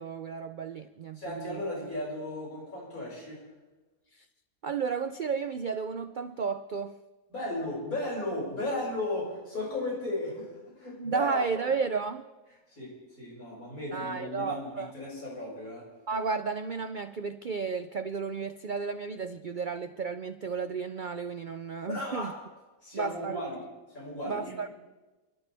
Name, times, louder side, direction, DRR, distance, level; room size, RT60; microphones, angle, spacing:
voice 1, 0.0-1.6 4.1-4.3 4.6-6.9 11.0-12.3 13.9-14.9 16.1-22.3 22.9-23.4 24.3-24.7, right 5 dB, 75° right, 10 dB, 0.4 m, -33 dB
voice 2, 1.1-3.4 7.3-11.6 12.7-15.9 21.8-22.3 22.8-23.6 23.9-24.5, left 1 dB, 65° left, -5 dB, 6.6 m, -35 dB
29.5 x 12.0 x 3.4 m, 1.2 s
omnidirectional pair, 1.6 m